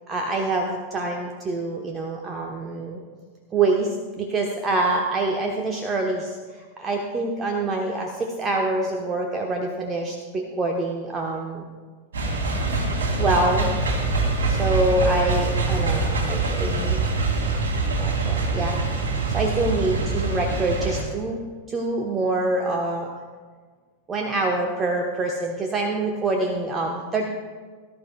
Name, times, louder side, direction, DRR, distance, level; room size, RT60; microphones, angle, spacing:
voice 1, 0.1-3.0 3.5-11.6 13.2-13.8 14.5-17.0 18.0-18.8 19.3-21.4 21.7-23.1 24.1-27.2, right 2 dB, 25° right, 1 dB, 1.0 m, -25 dB
sound 1, 12.1-21.0, right 3 dB, 65° right, 2.3 m, -24 dB
18.5 x 11.5 x 2.3 m, 1.5 s
figure-of-eight pair, 90°, 0 cm